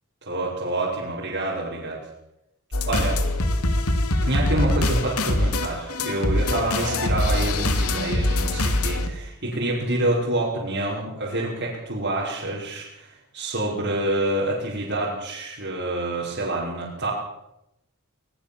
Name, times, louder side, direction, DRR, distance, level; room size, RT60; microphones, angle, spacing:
voice 1, 0.2-2.0 2.8-3.2 4.2-17.1, right 1 dB, 50° right, -6 dB, 5.7 m, -27 dB
sound 1, 2.7-9.1, left 1 dB, 85° left, 2.7 m, -23 dB
22.0 x 20.5 x 7.2 m, 0.87 s
head